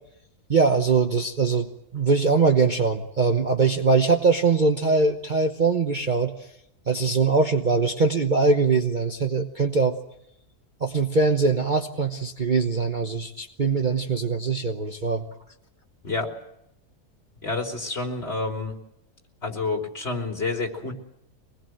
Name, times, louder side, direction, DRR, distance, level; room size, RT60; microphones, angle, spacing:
voice 1, 0.5-6.3 6.9-10.0 10.8-15.2, right 4 dB, 35° right, 5 dB, 1.1 m, -22 dB
voice 2, 17.4-18.8 19.4-20.9, left 3 dB, 40° left, 2 dB, 3.7 m, -28 dB
24.0 x 20.5 x 7.8 m, 0.82 s
omnidirectional pair, 1.6 m